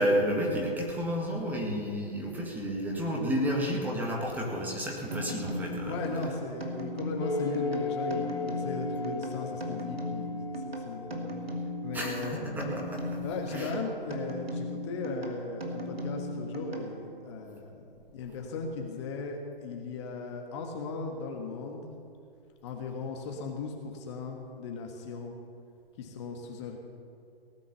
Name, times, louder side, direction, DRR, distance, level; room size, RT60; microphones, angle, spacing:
voice 1, 0.0-6.0 11.9-13.2 13.5-13.7, equal, 5° right, -2 dB, 1.8 m, -31 dB
sound 1, 5.1-17.3, equal, 80° right, 2.5 m, -37 dB
voice 2, 5.8-11.3 11.8-12.6 13.2-17.8 18.1-21.9 22.6-25.4 26.0-26.8, left 4 dB, 30° left, 2 dB, 1.4 m, -37 dB
sound 2, 7.2-12.1, left 3 dB, 75° left, 2.7 m, -35 dB
18.0 x 9.4 x 6.9 m, 2.5 s
figure-of-eight pair, 135°, 29 cm